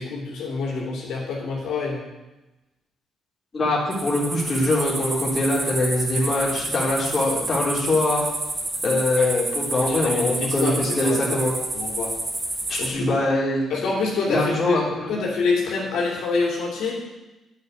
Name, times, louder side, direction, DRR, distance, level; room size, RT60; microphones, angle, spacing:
voice 1, 0.0-2.0 9.2-9.3 9.8-11.4 11.7-12.1 12.8-13.1 13.7-16.9, left 4 dB, 80° left, -4 dB, 3.1 m, -26 dB
voice 2, 3.5-8.2 8.8-11.5 12.7-13.6 14.3-15.1, left 1 dB, 35° left, -6 dB, 3.9 m, -23 dB
sound 1, 3.9-12.9, right 2 dB, 30° right, 2.4 m, -29 dB
9.5 x 7.0 x 8.9 m, 1.0 s
cardioid pair, 90°, 0 cm